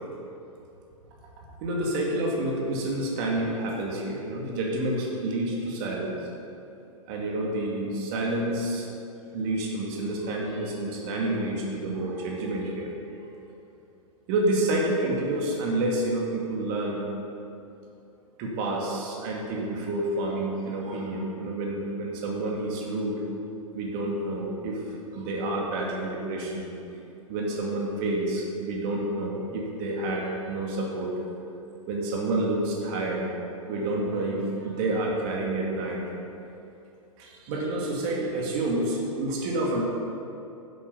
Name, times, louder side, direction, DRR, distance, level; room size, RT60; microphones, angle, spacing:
voice 1, 1.6-6.2 7.1-8.9 9.3-12.9 14.3-17.0 18.4-23.2 23.7-26.9 27.3-31.1 31.9-33.3 33.7-36.0 37.2-39.8, right 2 dB, 40° right, -1 dB, 2.4 m, -29 dB
10.0 x 8.5 x 5.5 m, 2.8 s
figure-of-eight pair, 105°, 18 cm